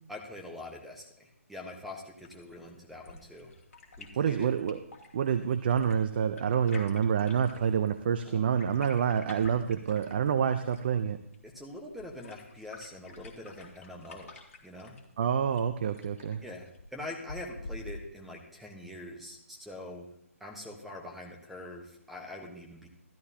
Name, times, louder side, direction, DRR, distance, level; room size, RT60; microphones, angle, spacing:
voice 1, 0.1-3.5 4.0-4.5 8.2-8.8 11.4-14.3 14.6-15.0 16.4-20.1 20.4-22.9, left 1 dB, ahead, 3 dB, 1.2 m, -44 dB
sound 1, 2.2-18.2, left 2 dB, 60° left, 2.5 m, -49 dB
voice 2, 4.2-4.8 5.1-11.2 15.2-16.4, right 7 dB, 40° right, 9 dB, 0.6 m, -27 dB
13.5 x 13.0 x 2.9 m, 0.76 s
hypercardioid pair, 160°, 8 cm